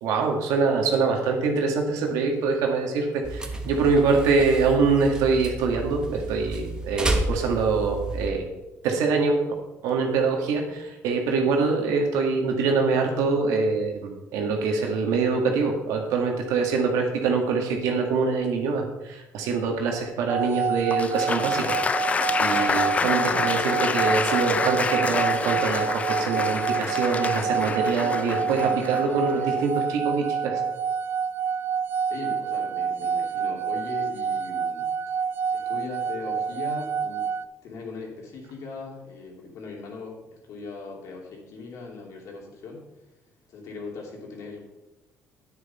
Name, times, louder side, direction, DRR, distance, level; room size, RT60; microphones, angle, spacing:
voice 1, 0.0-8.4 8.8-9.4 9.8-21.8 22.1-30.6, right 4 dB, 90° right, 2 dB, 2.1 m, -24 dB
sound 1, 3.2-8.3, right 1 dB, 15° right, 1.1 m, -31 dB
sound 2, 20.3-37.4, right 6 dB, 45° right, 0.4 m, -28 dB
Applause, 20.9-29.8, left 5 dB, 25° left, 0.5 m, -28 dB
voice 2, 32.0-34.9 35.2-35.3 35.5-37.3 37.6-42.8 43.5-44.6, left 4 dB, 65° left, -1 dB, 3.0 m, -39 dB
9.7 x 9.4 x 4.4 m, 0.98 s
cardioid pair, 130°, 6 cm